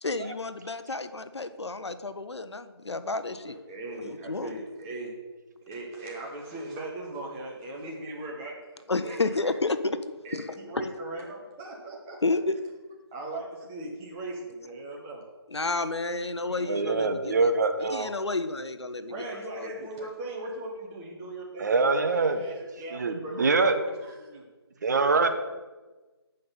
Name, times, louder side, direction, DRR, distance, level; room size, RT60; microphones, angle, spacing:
voice 1, 0.0-3.6 4.0-4.5 8.9-9.8 10.3-10.4 12.2-12.6 15.5-17.5 17.8-19.1 19.6-19.7, left 3 dB, 80° left, 11 dB, 0.7 m, -31 dB
voice 2, 3.3-5.1 5.7-8.6 9.0-9.5 10.2-12.2 13.1-15.2 19.1-24.5, right 2 dB, 5° right, -2 dB, 0.4 m, -39 dB
voice 3, 16.6-18.1 21.6-22.4 22.9-23.7 24.8-25.3, right 3 dB, 40° right, 7 dB, 0.7 m, -24 dB
8.4 x 5.2 x 4.1 m, 1.3 s
figure-of-eight pair, 155°, 14 cm